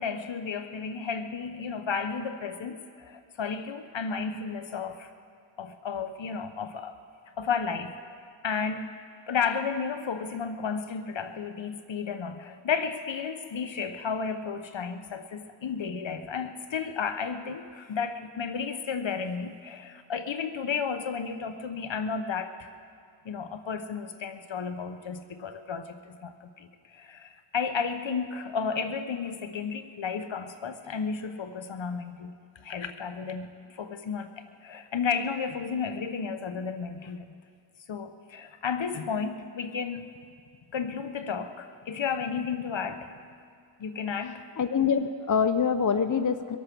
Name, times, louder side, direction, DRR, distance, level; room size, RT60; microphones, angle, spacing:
voice 1, 0.0-5.1 5.6-7.0 7.4-8.2 8.4-9.0 9.3-22.7 23.2-34.3 34.6-37.3 37.9-40.1 40.7-43.1 43.8-44.4, left 6 dB, 70° left, 9 dB, 1.1 m, -33 dB
voice 2, 44.6-46.6, left 6 dB, 40° left, 10 dB, 0.8 m, -25 dB
23.5 x 8.7 x 6.1 m, 2.3 s
cardioid pair, 45°, 47 cm